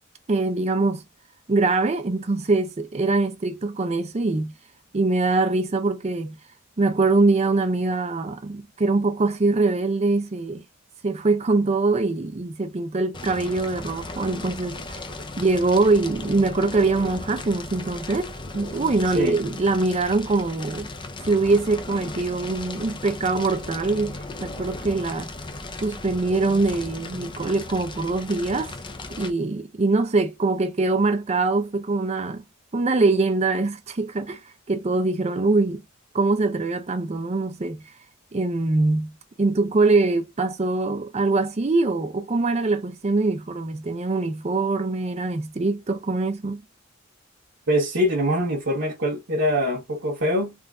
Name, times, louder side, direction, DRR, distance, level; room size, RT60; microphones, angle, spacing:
voice 1, 0.3-1.0 1.5-4.5 4.9-6.4 6.8-10.6 11.0-15.0 15.4-20.9 21.2-25.3 25.8-28.7 29.1-32.4 32.7-34.4 34.7-35.8 36.1-37.8 38.3-46.6, right 3 dB, 30° right, 0.5 m, -23 dB
Fire, 13.1-29.3, left 2 dB, 25° left, 0.5 m, -36 dB
voice 2, 47.7-50.5, equal, 60° right, 1.1 m, -23 dB
3.6 x 2.5 x 2.3 m
head